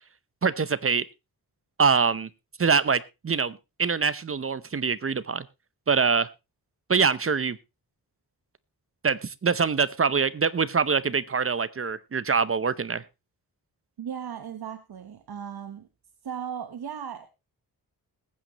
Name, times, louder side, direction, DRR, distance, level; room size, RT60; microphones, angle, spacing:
voice 1, 0.4-1.0 1.8-2.3 2.6-5.5 5.9-6.3 6.9-7.6 9.0-13.0, right 5 dB, 35° right, 17 dB, 0.7 m, -24 dB
voice 2, 14.0-15.9 16.2-17.3, right 8 dB, 70° right, 9 dB, 1.2 m, -36 dB
21.0 x 9.0 x 3.0 m, 0.25 s
wide cardioid pair, 125°, 39 cm